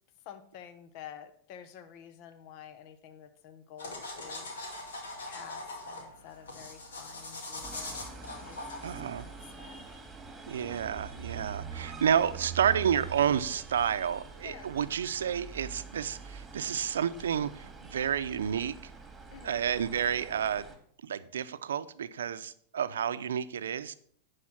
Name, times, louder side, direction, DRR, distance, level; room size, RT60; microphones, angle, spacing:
voice 1, 0.2-10.0 14.4-14.7 19.3-19.6, left 9 dB, 55° left, 10 dB, 0.9 m, -50 dB
sound 1, 3.8-10.0, left 2 dB, 90° left, 2.5 m, -42 dB
sound 2, 7.6-20.8, right 6 dB, 15° right, 2.1 m, -45 dB
voice 2, 8.8-9.3 10.5-18.8 19.4-20.7 21.0-23.9, right 8 dB, 90° right, 13 dB, 0.5 m, -30 dB
10.5 x 5.0 x 5.9 m, 0.62 s
hypercardioid pair, 110°, 0 cm